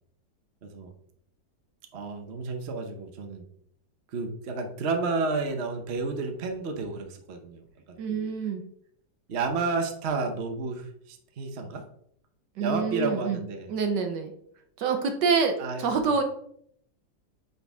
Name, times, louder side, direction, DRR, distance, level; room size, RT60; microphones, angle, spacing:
voice 1, 0.6-0.9 1.9-3.4 4.1-7.6 7.9-8.3 9.3-11.8 12.6-13.7 15.6-16.1, right 3 dB, 45° right, 5 dB, 0.9 m, -31 dB
voice 2, 8.0-8.6 12.6-13.4 13.7-14.3 14.8-16.2, right 5 dB, 70° right, 5 dB, 1.4 m, -26 dB
9.1 x 4.1 x 3.5 m, 0.69 s
omnidirectional pair, 2.1 m